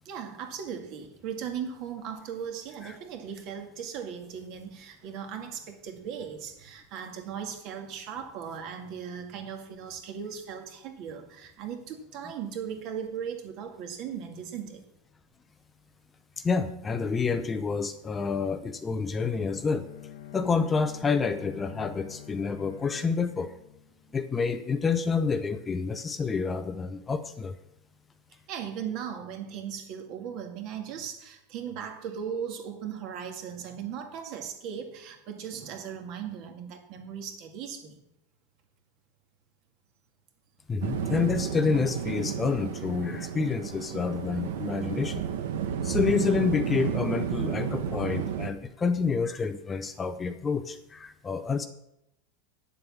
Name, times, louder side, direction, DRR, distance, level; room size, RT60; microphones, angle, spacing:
voice 1, 0.0-14.8 28.5-38.0, right 8 dB, 45° right, 5 dB, 2.0 m, -38 dB
voice 2, 16.4-19.9 20.3-23.5 24.1-27.6 40.7-45.2 45.8-51.7, left 5 dB, 15° left, 10 dB, 0.6 m, -28 dB
Bowed string instrument, 19.5-24.4, left 10 dB, 80° left, 0.9 m, -46 dB
sound 1, 40.8-48.5, right 8 dB, 85° right, 1.2 m, -32 dB
9.4 x 7.5 x 7.2 m, 0.82 s
supercardioid pair, 150°, 0 cm